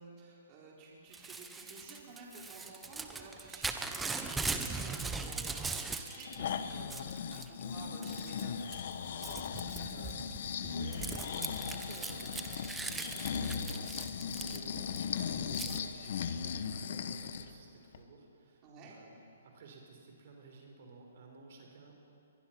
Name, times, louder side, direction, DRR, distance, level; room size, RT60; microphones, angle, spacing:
voice 1, 0.0-8.7 9.8-9.9 18.6-18.9, right 3 dB, 30° right, -3 dB, 4.1 m, -52 dB
Crumpling crinkling / Tearing, 1.1-6.4 6.7-7.5 8.0-8.4 8.7-15.0 15.5-15.8, right 4 dB, 10° right, 1.0 m, -40 dB
Breathing, 6.1-17.5 17.9-18.0, left 7 dB, 55° left, 1.1 m, -38 dB
voice 2, 9.2-10.2 10.7-21.9, right 3 dB, 55° right, 2 dB, 4.2 m, -53 dB
23.0 x 21.5 x 5.9 m, 2.7 s
hypercardioid pair, 150°, 0 cm